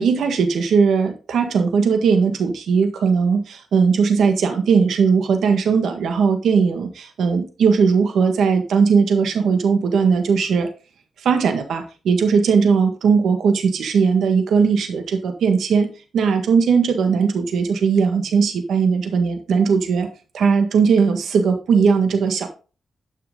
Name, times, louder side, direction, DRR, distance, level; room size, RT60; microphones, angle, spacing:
voice 1, 0.0-10.7 11.2-15.9 16.1-20.1 20.3-22.5, right 5 dB, 90° right, 7 dB, 1.7 m, -18 dB
11.0 x 6.0 x 3.8 m, 0.35 s
cardioid pair, 90°, 0 cm